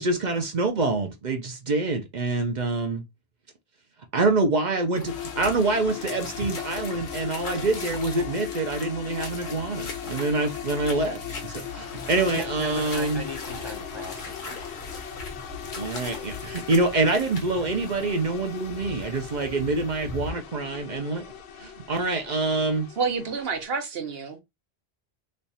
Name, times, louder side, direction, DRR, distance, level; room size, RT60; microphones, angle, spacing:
voice 1, 0.0-3.0 4.1-13.2 15.8-21.3 21.6-22.9, right 3 dB, 50° right, 0.7 m, -26 dB
sound 1, 4.9-20.3, left 3 dB, 50° left, 1.1 m, -40 dB
sound 2, 5.1-23.7, left 9 dB, 80° left, 0.9 m, -38 dB
voice 2, 12.3-14.5, left 2 dB, 30° left, 0.6 m, -36 dB
voice 3, 23.0-24.4, right 5 dB, 65° right, 1.0 m, -28 dB
3.2 x 2.3 x 4.0 m
omnidirectional pair, 1.1 m